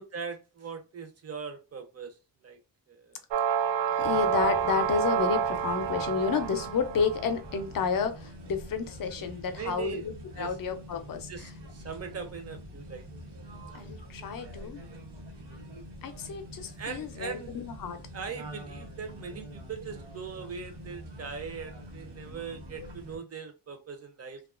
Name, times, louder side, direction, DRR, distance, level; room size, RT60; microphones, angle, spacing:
voice 1, 0.0-2.2 2.4-2.6 2.9-3.2 9.6-10.1 10.4-10.5 11.3-13.1 16.8-17.6 18.1-24.4, right 6 dB, 35° right, 0.5 m, -40 dB
sound 1, 3.3-7.4, right 8 dB, 85° right, 0.5 m, -28 dB
voice 2, 4.0-11.5 13.7-14.8 16.0-18.0, left 6 dB, 50° left, 0.5 m, -31 dB
sound 2, 4.0-23.2, equal, 70° right, 1.0 m, -45 dB
2.8 x 2.3 x 2.4 m
wide cardioid pair, 145°, 43 cm